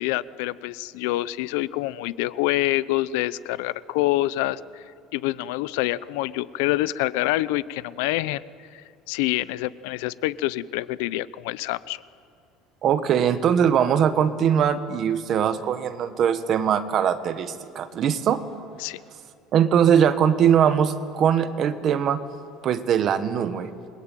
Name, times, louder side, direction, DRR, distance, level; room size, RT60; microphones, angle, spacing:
voice 1, 0.0-4.8 5.1-8.4 8.7-8.8 9.1-12.0 18.8-19.0, left 17 dB, 85° left, 18 dB, 0.7 m, -26 dB
voice 2, 12.8-18.4 19.5-22.2 22.6-23.7, right 8 dB, 35° right, 10 dB, 1.4 m, -21 dB
29.5 x 22.0 x 9.2 m, 2.3 s
cardioid pair, 165°, 0 cm